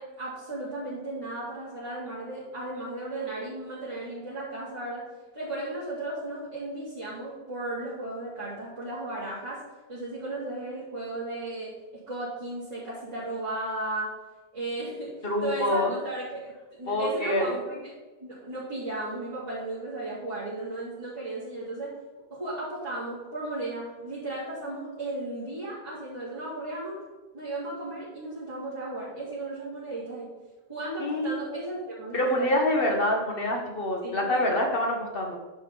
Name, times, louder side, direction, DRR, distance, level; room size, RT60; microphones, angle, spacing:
voice 1, 0.0-5.0 5.3-9.6 9.9-14.1 14.5-17.9 18.2-21.9 22.3-27.0 27.3-30.3 30.7-32.5 34.0-34.4, right 2 dB, 25° right, -13 dB, 3.2 m, -35 dB
voice 2, 15.2-16.0 16.9-17.6 31.0-31.3 32.1-35.4, left 1 dB, 50° left, 0 dB, 1.7 m, -26 dB
10.5 x 6.1 x 4.1 m, 1.2 s
omnidirectional pair, 1.2 m